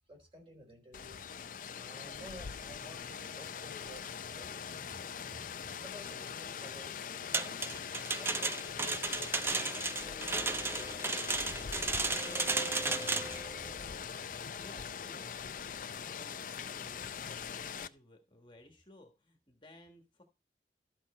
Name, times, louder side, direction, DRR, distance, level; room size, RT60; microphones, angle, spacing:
voice 1, 0.1-1.2 1.7-4.1 4.3-5.3 5.8-7.6 8.2-11.4 11.9-13.7, equal, 30° right, 1 dB, 3.9 m, -54 dB
Rain, 0.9-17.9, left 7 dB, 50° left, 0.4 m, -42 dB
sound 1, 7.3-13.4, right 3 dB, 15° right, 0.4 m, -34 dB
voice 2, 7.6-8.0 14.6-20.2, left 1 dB, 25° left, 4 dB, 1.4 m, -57 dB
sound 2, 9.4-14.1, right 1 dB, 5° left, 1.4 m, -49 dB
13.0 x 5.8 x 4.2 m, 0.29 s
head